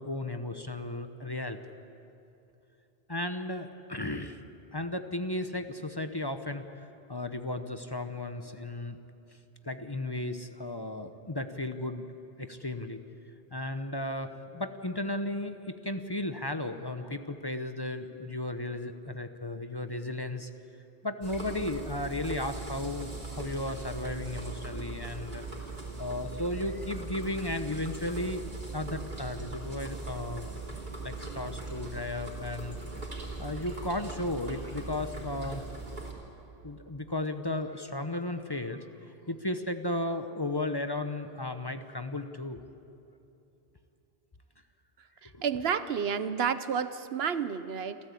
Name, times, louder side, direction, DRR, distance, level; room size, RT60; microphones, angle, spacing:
voice 1, 0.0-1.6 3.1-4.4 4.7-6.6 7.1-9.0 9.6-12.0 12.4-13.0 13.5-20.5 21.0-25.4 26.0-28.4 28.7-30.5 31.0-32.8 33.4-35.6 36.6-38.9 39.3-42.6 45.3-45.4, left 1 dB, 25° left, 8 dB, 0.8 m, -34 dB
sound 1, 21.2-36.1, right 3 dB, 50° right, 3.4 m, -40 dB
voice 2, 45.2-48.0, right 7 dB, 75° right, 13 dB, 1.1 m, -30 dB
28.5 x 13.0 x 8.3 m, 2.8 s
omnidirectional pair, 1.1 m